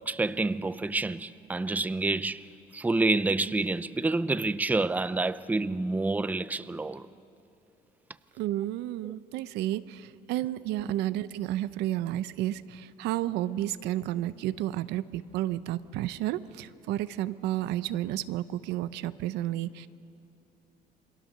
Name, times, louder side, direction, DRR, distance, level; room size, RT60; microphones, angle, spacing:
voice 1, 0.1-2.5 2.7-7.1, right 3 dB, 10° right, 0.5 m, -28 dB
voice 2, 8.4-19.9, right 14 dB, 90° right, 0.7 m, -31 dB
28.0 x 22.5 x 6.7 m
cardioid pair, 110°, 17 cm